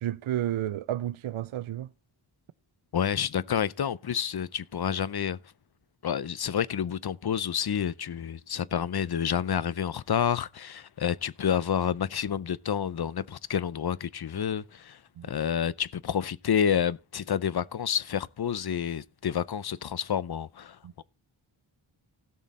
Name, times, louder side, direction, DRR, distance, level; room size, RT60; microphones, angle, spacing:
voice 1, 0.0-1.9 15.2-15.3 20.8-20.9, right 12 dB, 75° right, 0.5 m, -31 dB
voice 2, 2.9-5.4 6.0-21.0, left 8 dB, 50° left, 0.6 m, -29 dB
17.0 x 6.3 x 4.1 m
wide cardioid pair, 65°, 50 cm